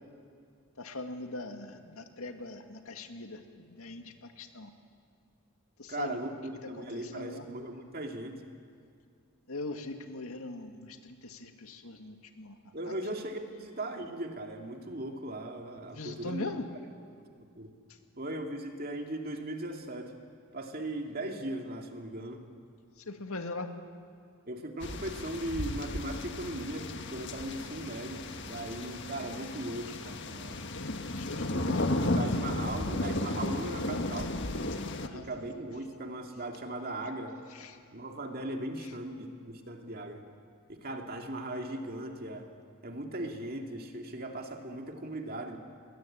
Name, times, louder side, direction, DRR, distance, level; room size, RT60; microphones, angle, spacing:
voice 1, 0.8-4.7 5.8-6.2 6.9-7.5 9.5-12.6 12.9-13.0 15.9-16.7 23.1-23.7 30.7-31.7 35.0-35.3 37.5-37.8, left 2 dB, 75° left, 6 dB, 2.2 m, -41 dB
voice 2, 5.9-8.4 12.7-16.5 17.6-17.7 18.2-20.1 20.5-22.5 24.5-30.6 31.5-34.4 35.1-37.4 37.9-40.2 40.7-42.5 42.8-45.6, right 1 dB, 40° right, 3 dB, 2.4 m, -38 dB
sound 1, 24.8-35.1, left 2 dB, 50° left, 1.5 m, -34 dB
29.0 x 22.0 x 8.7 m, 2.2 s
head